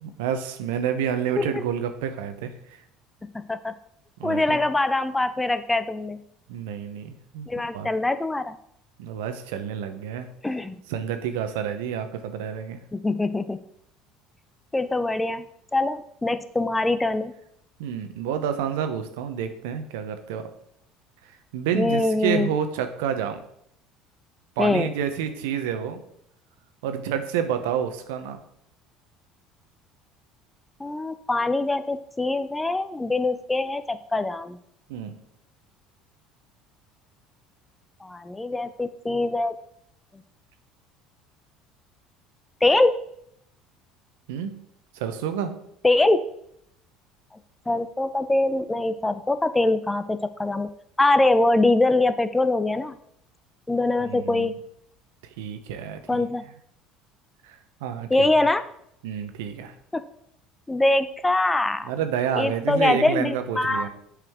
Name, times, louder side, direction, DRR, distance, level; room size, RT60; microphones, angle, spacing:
voice 1, 0.0-2.5 4.2-4.6 6.5-7.5 7.7-7.9 9.0-10.3 10.9-12.8 17.8-20.5 21.5-23.4 24.6-26.0 26.8-28.4 34.9-35.1 44.3-44.5 44.9-45.5 54.1-54.5 55.4-56.3 57.4-58.3 59.0-59.7 61.9-63.9, right 8 dB, 85° right, 8 dB, 0.8 m, -29 dB
voice 2, 3.2-3.7 4.2-6.2 7.5-8.6 10.4-10.8 12.9-13.6 14.7-15.5 15.7-17.3 21.7-22.5 24.6-24.9 30.8-34.6 38.0-39.5 42.6-42.9 45.8-46.2 47.7-50.7 51.0-53.0 53.7-54.5 56.1-56.4 58.1-58.6 59.9-60.0 60.7-61.9 62.3-63.9, left 2 dB, 15° left, 12 dB, 0.5 m, -23 dB
7.8 x 4.9 x 3.6 m, 0.72 s
supercardioid pair, 85°, 0 cm